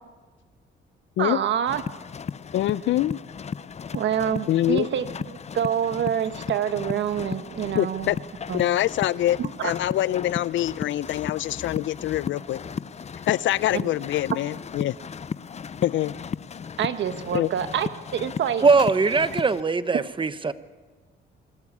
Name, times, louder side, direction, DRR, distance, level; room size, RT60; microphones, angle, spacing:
voice 1, 1.2-1.8 3.9-5.1 5.5-8.1 8.5-8.6 9.4-9.7 13.7-13.9 16.8-18.6, right 9 dB, 70° right, 10 dB, 1.4 m, -26 dB
sound 1, 1.7-19.6, left 6 dB, 35° left, 0.6 m, -35 dB
voice 2, 2.5-3.2 4.5-4.9 7.8-8.2 8.5-12.6 13.3-14.9 15.8-16.1 17.3-17.5, left 13 dB, 75° left, 20 dB, 0.5 m, -24 dB
voice 3, 18.6-20.5, right 4 dB, 25° right, 13 dB, 1.0 m, -21 dB
25.0 x 13.5 x 8.5 m, 1.4 s
cardioid pair, 90°, 20 cm